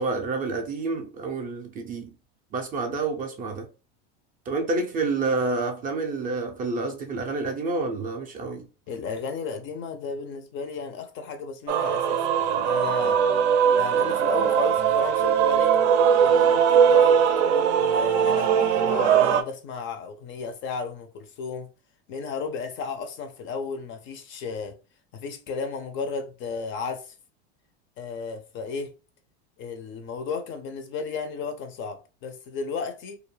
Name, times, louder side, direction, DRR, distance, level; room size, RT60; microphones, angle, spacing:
voice 1, 0.0-2.1 2.5-3.7 4.5-8.7, right 3 dB, 25° right, 0.4 m, -28 dB
voice 2, 8.9-13.2 13.8-15.8 16.2-21.7 22.1-24.8 25.1-27.1 28.0-29.0 29.6-33.2, left 5 dB, 35° left, 0.4 m, -34 dB
Male singing / Female singing / Musical instrument, 11.7-19.4, right 8 dB, 80° right, 0.5 m, -20 dB
2.3 x 2.0 x 3.1 m
supercardioid pair, 115°, 34 cm